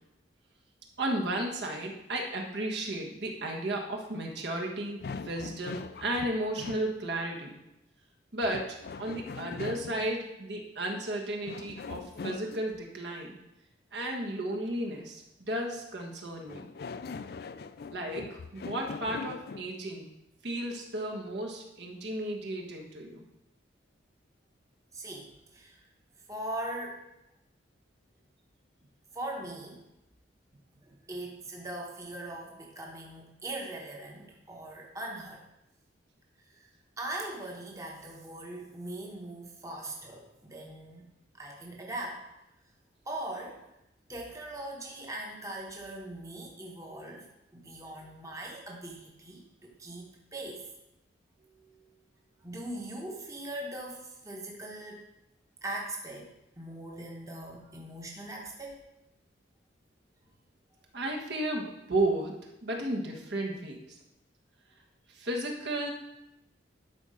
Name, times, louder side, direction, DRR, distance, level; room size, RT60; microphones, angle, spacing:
voice 1, 1.0-7.6 8.3-13.4 13.9-16.7 17.9-20.1 20.4-23.2 60.9-63.8 65.1-65.9, right 1 dB, 65° right, 0 dB, 1.3 m, -34 dB
sound 1, 5.0-6.9 8.4-10.1 11.5-12.8 16.5-19.7, left 4 dB, 55° left, 0.4 m, -41 dB
voice 2, 24.9-25.8 26.3-27.0 29.1-29.8 31.1-35.4 36.5-36.7 37.0-41.1 41.3-42.2 43.1-43.6 44.1-47.3 47.5-50.7 52.4-55.0 55.6-56.3 56.6-58.8, right 1 dB, 15° right, -1 dB, 1.0 m, -40 dB
11.5 x 4.2 x 5.1 m, 0.88 s
head